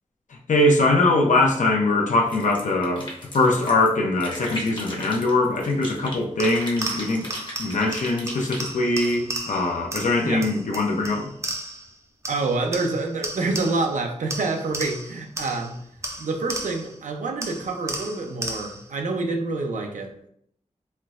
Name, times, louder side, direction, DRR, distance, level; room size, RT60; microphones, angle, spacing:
voice 1, 0.5-3.1 3.3-7.3 7.6-11.3, left 2 dB, 80° left, 0 dB, 0.6 m, -22 dB
sound 1, 2.3-3.9 4.2-6.2 6.4-9.1, left 1 dB, 40° left, 0.8 m, -37 dB
sound 2, 6.4-11.9 12.2-14.0 14.3-17.0 17.4-18.9, right 2 dB, 25° right, 0.4 m, -34 dB
voice 2, 12.3-15.8 16.2-20.1, right 3 dB, 85° right, 3 dB, 0.5 m, -27 dB
4.3 x 2.0 x 2.4 m, 0.69 s
wide cardioid pair, 115°, 13 cm